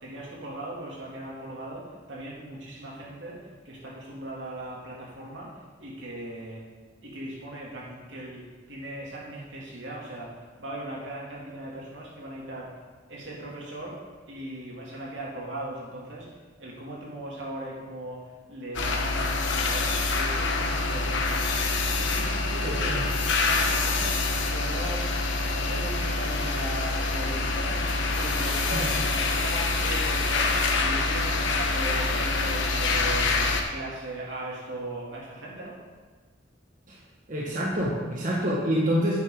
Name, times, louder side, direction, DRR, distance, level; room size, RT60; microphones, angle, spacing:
voice 1, 0.0-6.7 7.0-12.8 13.1-21.5 21.9-25.1 25.6-27.9 28.2-35.8, right 1 dB, 75° right, -4 dB, 2.9 m, -38 dB
sound 1, 18.7-33.6, left 3 dB, 80° left, 1.1 m, -26 dB
voice 2, 22.6-23.0 28.7-28.9 36.9-37.0 37.3-39.2, equal, 45° right, -5 dB, 1.8 m, -27 dB
9.9 x 9.7 x 4.0 m, 1.4 s
head